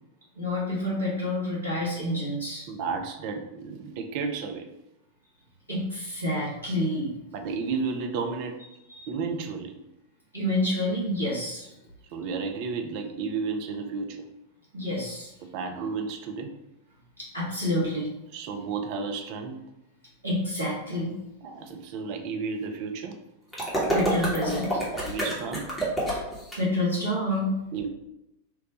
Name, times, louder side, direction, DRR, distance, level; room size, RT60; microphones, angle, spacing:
voice 1, 0.3-2.7 5.7-7.1 8.9-9.1 10.3-11.7 14.7-15.3 17.2-18.1 20.2-21.1 23.9-24.8 26.1-26.2 26.6-27.5, left 1 dB, 85° right, -7 dB, 1.1 m, -28 dB
voice 2, 2.7-4.7 7.3-8.6 9.1-9.8 12.1-14.2 15.4-16.5 18.3-19.6 21.4-23.2 25.0-25.7 27.7-27.9, right 5 dB, 45° right, 4 dB, 0.3 m, -32 dB
sound 1, 23.5-26.6, right 1 dB, 10° left, 0.9 m, -28 dB
2.9 x 2.1 x 2.8 m, 0.90 s
figure-of-eight pair, 90°, 0 cm